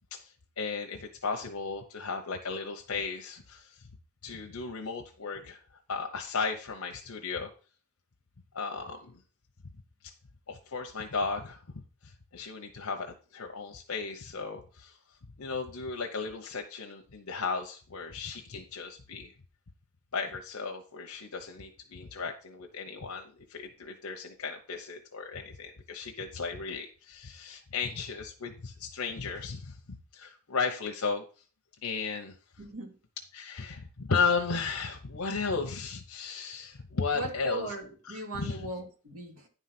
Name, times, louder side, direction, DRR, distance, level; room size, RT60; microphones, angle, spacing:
voice 1, 0.1-3.8 4.2-5.6 5.9-7.5 8.5-9.2 10.0-10.1 10.5-15.0 15.4-19.3 20.1-29.8 30.1-31.2 31.8-32.3 33.3-37.7 38.1-38.7, left 4 dB, 75° left, 3 dB, 0.9 m, -35 dB
voice 2, 32.6-33.0 37.1-39.5, right 2 dB, 75° right, 2 dB, 2.2 m, -38 dB
10.0 x 4.0 x 5.9 m, 0.38 s
head